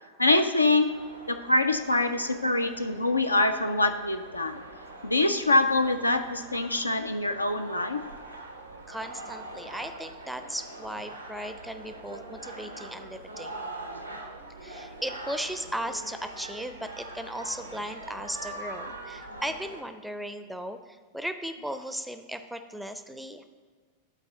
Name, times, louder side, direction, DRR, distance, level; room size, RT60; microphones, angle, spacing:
voice 1, 0.2-0.9 1.3-4.6 5.0-8.0, left 2 dB, 85° left, 7 dB, 0.4 m, -24 dB
sound 1, 0.8-19.8, right 2 dB, 85° right, 0.8 m, -43 dB
voice 2, 8.9-13.6 14.6-23.4, equal, ahead, 8 dB, 0.4 m, -37 dB
11.5 x 4.2 x 3.6 m, 1.5 s
figure-of-eight pair, 90°, 0 cm